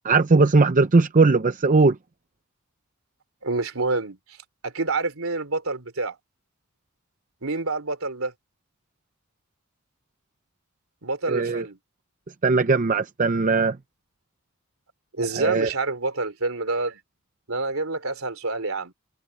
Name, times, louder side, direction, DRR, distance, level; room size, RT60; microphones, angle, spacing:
voice 1, 0.0-2.0 11.3-11.7 12.4-13.8 15.4-15.7, right 3 dB, 40° right, 0.6 m, -19 dB
voice 2, 3.4-4.2 4.6-6.2 7.4-8.3 11.0-11.8 15.1-17.0 17.5-18.9, right 3 dB, 75° right, 3.4 m, -27 dB
open air
head